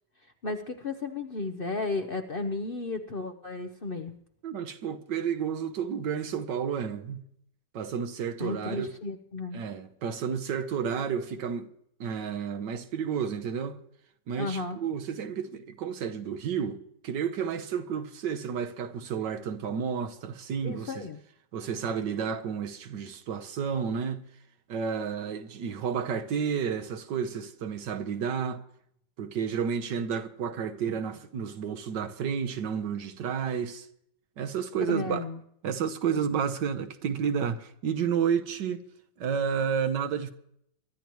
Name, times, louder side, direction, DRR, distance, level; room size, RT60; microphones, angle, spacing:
voice 1, 0.4-4.2 8.4-9.6 14.4-14.8 20.6-21.2 34.8-35.4 36.1-36.3, left 3 dB, 50° left, 0.7 m, -34 dB
voice 2, 4.4-7.2 7.7-8.9 9.5-11.7 12.0-13.8 14.3-21.1 21.5-24.2 24.7-28.6 29.2-33.9 34.4-35.2 35.6-38.8 39.2-40.3, right 7 dB, 85° right, 1.6 m, -31 dB
23.5 x 12.0 x 3.1 m
omnidirectional pair, 1.8 m